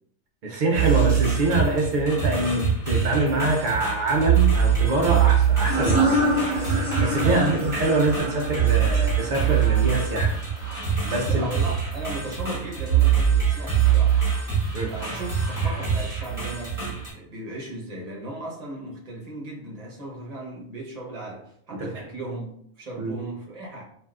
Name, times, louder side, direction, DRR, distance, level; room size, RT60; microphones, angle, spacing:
voice 1, 0.4-6.4 7.0-10.4 11.0-11.5 14.7-15.0 21.7-22.0 23.0-23.3, right 2 dB, 85° right, 0.4 m, -25 dB
sound 1, 0.7-17.1, right 8 dB, 15° right, 1.3 m, -23 dB
sound 2, 5.6-11.0, equal, 50° left, 1.4 m, -27 dB
voice 2, 7.2-7.5 11.3-14.2 14.9-23.8, right 1 dB, 35° right, 0.7 m, -36 dB
3.3 x 2.7 x 2.3 m
omnidirectional pair, 1.4 m